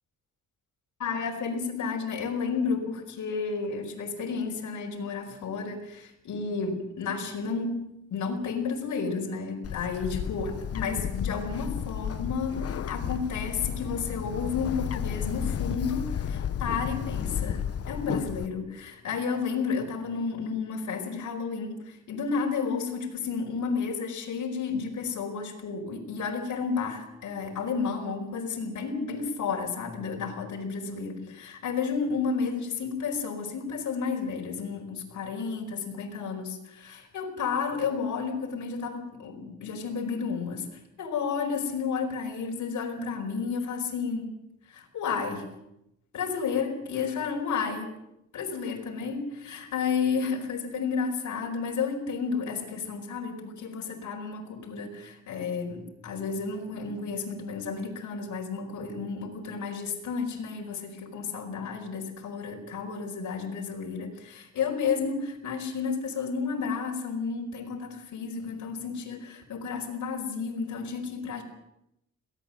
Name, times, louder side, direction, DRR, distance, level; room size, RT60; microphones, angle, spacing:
voice 1, 1.0-7.8 8.1-44.3 44.7-45.5 46.1-47.9 48.3-71.4, left 5 dB, 70° left, 0 dB, 4.9 m, -32 dB
Bird, 9.6-18.5, left 8 dB, 50° left, 1.1 m, -32 dB
23.0 x 17.5 x 7.7 m, 0.82 s
cardioid pair, 145°, 31 cm